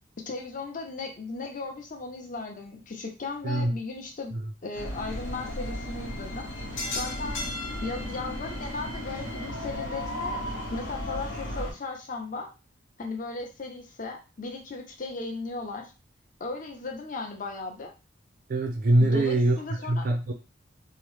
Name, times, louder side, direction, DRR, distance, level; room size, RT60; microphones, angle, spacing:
voice 1, 0.3-4.3 4.6-6.5 6.9-7.4 7.8-10.4 10.7-12.5 13.0-15.9 16.4-17.9 19.0-20.0, left 3 dB, 40° left, 2 dB, 0.6 m, -36 dB
voice 2, 3.4-3.8 4.3-4.4 18.5-19.6 19.9-20.3, right 1 dB, 45° right, 2 dB, 0.4 m, -23 dB
sound 1, 4.7-11.7, left 1 dB, 75° left, 0.8 m, -34 dB
2.8 x 2.0 x 3.2 m, 0.30 s
head